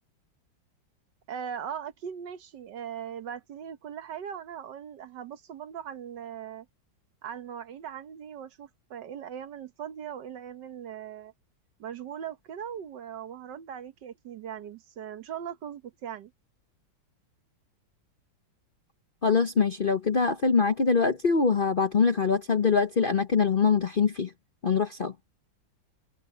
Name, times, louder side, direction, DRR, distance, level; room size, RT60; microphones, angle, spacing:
voice 1, 1.3-6.7 7.2-11.3 11.8-16.3, right 8 dB, 70° right, 1.7 m, -39 dB
voice 2, 19.2-24.3 24.6-25.1, left 5 dB, 40° left, 0.8 m, -23 dB
omnidirectional pair, 2.0 m